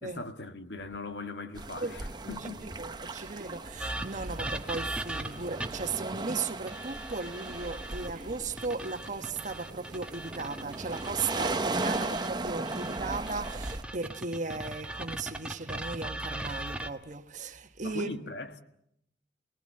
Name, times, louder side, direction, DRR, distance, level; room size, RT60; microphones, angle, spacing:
voice 1, 0.0-2.6 17.8-18.6, left 3 dB, 75° left, 1.6 m, -40 dB
sound 1, 1.5-13.8, right 2 dB, 25° right, 0.9 m, -37 dB
voice 2, 2.4-18.2, right 4 dB, 45° right, 1.3 m, -36 dB
sound 2, 3.8-5.9 6.7-8.1 8.6-12.3 12.7-16.9, right 1 dB, 5° right, 1.3 m, -39 dB
29.0 x 20.0 x 7.8 m
head